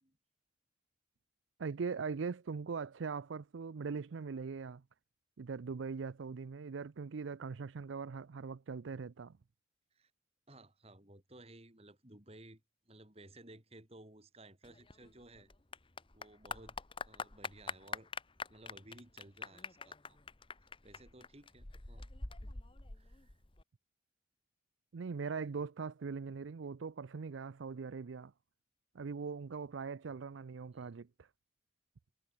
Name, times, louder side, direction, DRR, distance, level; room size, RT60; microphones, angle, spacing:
voice 1, 1.6-4.8 5.4-9.4 24.9-28.3 28.9-31.3, right 5 dB, 90° right, 0.5 m, -41 dB
voice 2, 10.5-15.5 16.1-16.8 17.0-18.1 18.5-20.2 20.8-22.1 22.9-23.3 30.7-30.9, right 1 dB, 35° right, 3.4 m, -57 dB
Clapping / Applause, 14.6-23.6, left 4 dB, 30° left, 1.2 m, -45 dB
head